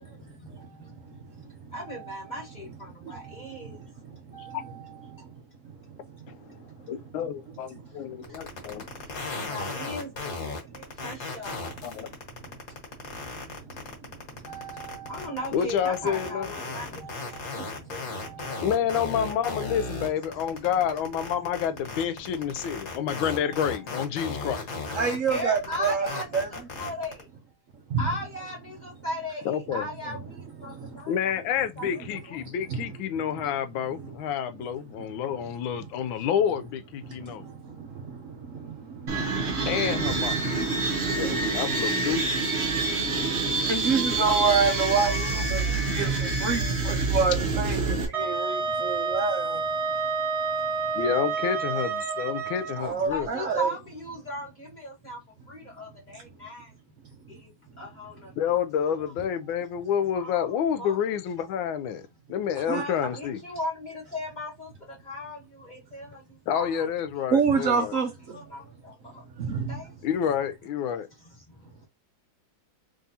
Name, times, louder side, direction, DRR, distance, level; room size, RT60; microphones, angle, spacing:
voice 1, 1.7-3.7 4.3-4.8 9.4-10.5 11.0-11.7 14.5-17.1 17.5-17.6 17.9-20.1 23.4-23.6 25.3-27.1 28.0-30.7 31.0-31.1 31.8-31.9 44.9-45.7 46.5-46.7 53.1-55.2 55.5-56.6 57.8-58.1 60.1-60.5 60.8-61.0 62.7-64.7 65.1-65.4 65.7-66.1 66.5-66.9 67.5-68.0 68.3-68.6 69.7-69.8, equal, 25° left, 1.2 m, -37 dB
voice 2, 6.9-8.9 11.8-12.1 15.5-16.5 18.6-24.7 29.4-29.9 31.1-37.4 39.6-40.4 41.1-42.3 50.9-53.3 58.4-62.0 62.3-63.4 66.5-68.0 70.0-71.1, left 8 dB, 80° left, 1.3 m, -29 dB
sound 1, 8.2-27.2, left 4 dB, 50° left, 1.6 m, -35 dB
voice 3, 24.9-26.1 26.3-26.5 27.9-28.1 30.6-30.9 32.7-32.9 34.0-34.1 37.0-39.8 40.3-41.4 42.7-42.8 43.3-49.6 52.8-53.7 62.7-62.8 67.3-68.4 69.4-69.8, right 5 dB, 70° right, 0.7 m, -28 dB
sound 2, 39.1-48.0, right 3 dB, 45° right, 1.0 m, -27 dB
Wind instrument woodwind instrument, 48.1-52.8, right 4 dB, 20° right, 1.1 m, -29 dB
3.6 x 3.4 x 2.7 m
omnidirectional pair, 2.2 m